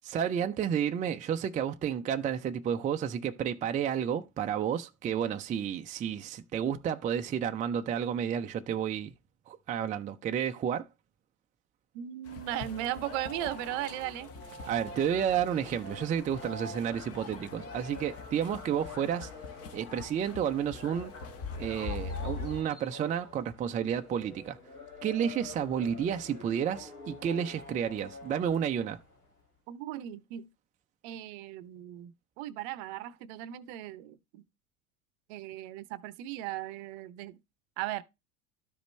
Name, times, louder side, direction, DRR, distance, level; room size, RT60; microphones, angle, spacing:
voice 1, 0.0-9.1 9.5-10.9 14.7-19.3 19.7-21.1 21.6-24.6 25.0-29.0, right 8 dB, 20° right, 0.5 m, -31 dB
voice 2, 11.9-14.3 29.7-30.5 31.0-34.4 35.3-37.4 37.8-38.0, right 14 dB, 50° right, 0.7 m, -37 dB
sound 1, 12.3-29.3, left 2 dB, 85° left, 1.9 m, -48 dB
sound 2, 12.3-22.6, left 4 dB, 35° left, 1.2 m, -43 dB
12.5 x 5.1 x 3.1 m
figure-of-eight pair, 75°, 43 cm